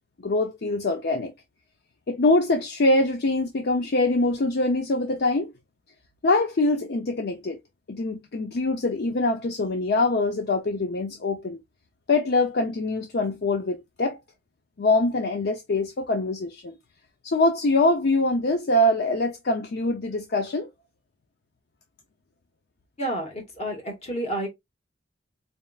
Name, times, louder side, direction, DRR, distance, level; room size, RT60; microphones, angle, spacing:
voice 1, 0.2-1.3 2.1-5.5 6.2-7.6 7.9-11.6 12.1-14.2 14.8-16.8 17.2-20.7, left 2 dB, 60° left, 0.5 m, -24 dB
voice 2, 23.0-24.5, right 1 dB, 35° left, 1.6 m, -30 dB
4.2 x 3.5 x 2.3 m
head